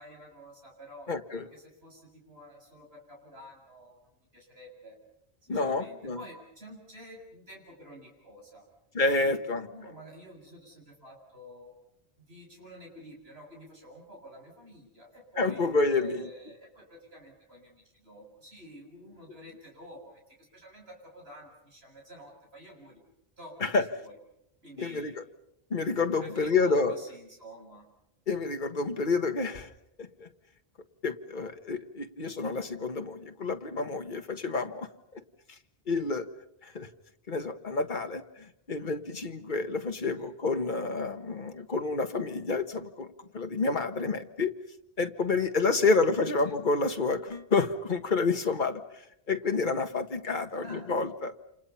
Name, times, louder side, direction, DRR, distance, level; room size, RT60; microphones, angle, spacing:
voice 1, 0.0-5.0 5.4-8.7 9.0-11.7 12.3-23.0 23.4-24.2 24.6-25.1 26.2-27.9 32.2-32.4 40.1-40.3 46.0-46.2 46.5-46.6 50.6-50.9, equal, 70° right, 0 dB, 7.5 m, -49 dB
voice 2, 1.1-1.4 5.5-6.2 8.9-9.6 15.4-16.3 23.6-23.8 24.8-25.2 25.7-26.9 28.3-29.7 30.0-30.3 31.0-35.2 35.9-36.3 36.6-36.9 37.3-38.2 38.7-44.5 45.0-48.8 49.3-51.3, left 3 dB, 50° left, 7 dB, 1.6 m, -29 dB
29.0 x 28.0 x 5.7 m, 0.78 s
omnidirectional pair, 1.1 m